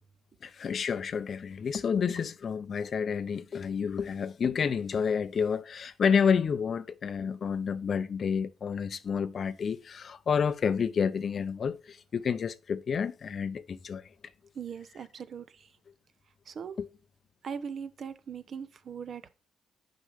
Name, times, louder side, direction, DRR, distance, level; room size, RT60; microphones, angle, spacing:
voice 1, 0.4-14.1 16.8-16.9, left 6 dB, 50° left, 0.6 m, -29 dB
voice 2, 14.5-15.8 16.5-16.8 17.4-19.3, right 7 dB, 55° right, 0.8 m, -40 dB
6.6 x 5.3 x 4.7 m
cardioid pair, 90°, 0 cm